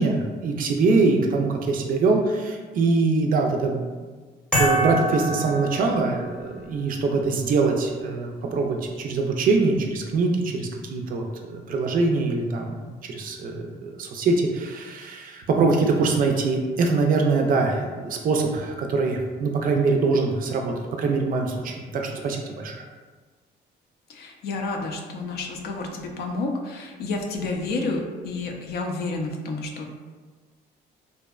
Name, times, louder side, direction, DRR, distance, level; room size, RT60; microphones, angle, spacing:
voice 1, 0.0-3.8 4.6-22.7, right 3 dB, 55° right, 2 dB, 0.4 m, -23 dB
sound 1, 4.5-6.4, right 1 dB, 5° left, 0.6 m, -25 dB
voice 2, 24.1-29.9, left 3 dB, 65° left, 2 dB, 0.4 m, -30 dB
2.6 x 2.1 x 2.3 m, 1.4 s
cardioid pair, 100°, 18 cm